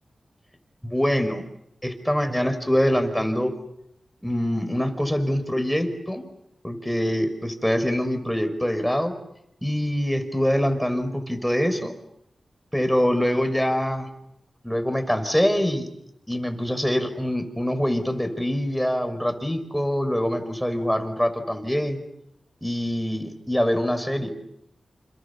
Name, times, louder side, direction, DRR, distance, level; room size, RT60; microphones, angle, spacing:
voice 1, 0.8-1.4 1.8-3.5 4.2-6.2 6.6-9.2 9.6-11.9 12.7-14.1 14.6-15.9 16.3-22.0 22.6-24.3, equal, 5° left, 8 dB, 5.4 m, -24 dB
28.5 x 28.0 x 7.2 m, 0.79 s
cardioid pair, 45°, 0 cm